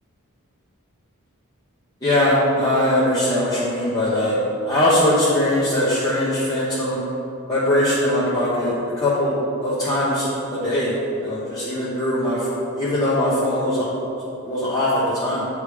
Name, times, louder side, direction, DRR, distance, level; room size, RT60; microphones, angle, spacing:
voice 1, 2.0-4.4 4.6-7.0 7.5-9.4 9.6-13.9 14.4-15.5, left 1 dB, 15° left, -9 dB, 0.8 m, -21 dB
8.1 x 3.4 x 4.9 m, 3.0 s
head